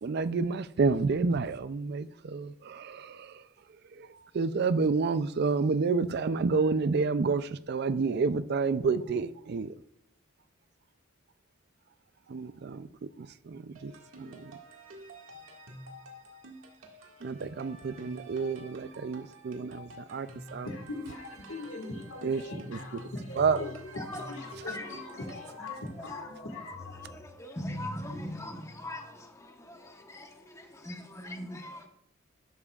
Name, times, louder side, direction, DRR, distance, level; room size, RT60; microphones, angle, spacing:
voice 1, 0.0-3.4 4.0-9.7 12.3-13.9 14.2-14.5 17.2-20.7 22.2-22.4 23.4-23.6, right 4 dB, 55° right, 0.4 m, -29 dB
sound 1, 13.8-26.1, right 1 dB, 85° right, 1.9 m, -49 dB
voice 2, 20.6-27.1, left 2 dB, 75° left, 1.9 m, -41 dB
voice 3, 23.9-24.3 24.7-25.7 26.1-26.5 26.9-31.9, left 1 dB, 15° left, 1.0 m, -41 dB
12.5 x 12.0 x 2.4 m
head